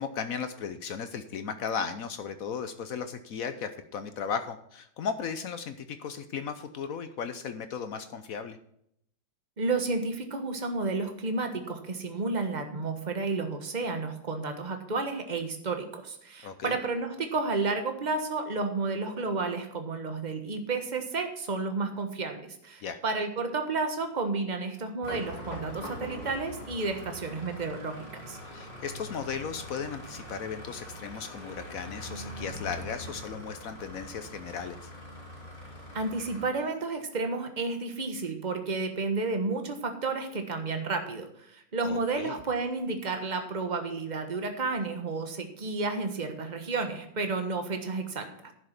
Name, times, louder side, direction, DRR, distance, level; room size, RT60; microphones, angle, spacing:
voice 1, 0.0-8.6 16.4-16.8 22.8-23.0 28.5-34.9 41.8-42.4, left 6 dB, 70° left, 10 dB, 0.8 m, -36 dB
voice 2, 9.6-28.4 35.9-48.5, right 3 dB, 25° right, 6 dB, 1.1 m, -31 dB
sound 1, 25.0-36.5, equal, 20° left, 2.7 m, -42 dB
11.0 x 7.2 x 5.9 m, 0.71 s
omnidirectional pair, 2.3 m